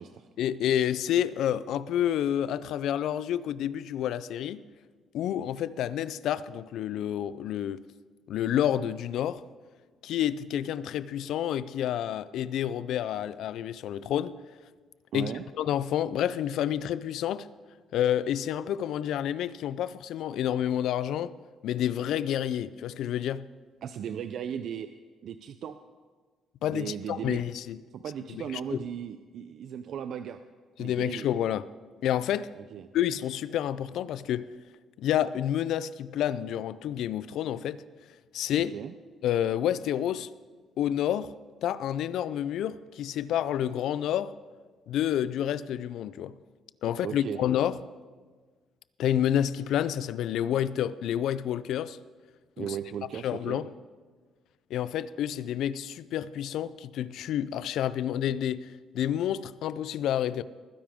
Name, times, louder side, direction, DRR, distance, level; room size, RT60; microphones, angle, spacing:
voice 1, 0.4-4.6 5.1-7.8 8.3-9.4 10.0-14.4 15.1-15.3 15.6-17.5 17.9-21.3 21.6-23.5 26.6-27.8 28.3-28.4 28.7-28.8 30.8-31.7 32.0-32.5 32.9-34.5 35.0-37.8 38.3-38.7 39.2-40.3 40.8-41.3 41.6-44.3 44.9-46.3 46.8-47.8 49.0-52.0 52.6-52.8 53.2-53.7 54.7-58.7 58.9-60.4, left 10 dB, 75° left, 0.4 m, -29 dB
voice 2, 15.1-15.4 23.8-24.9 25.2-25.8 26.7-27.4 27.9-30.4 30.8-31.3 32.6-32.9 38.6-38.9 47.0-47.4 52.6-53.7, right 8 dB, 60° right, 0.4 m, -37 dB
20.0 x 9.9 x 3.6 m
cardioid pair, 155°, 0 cm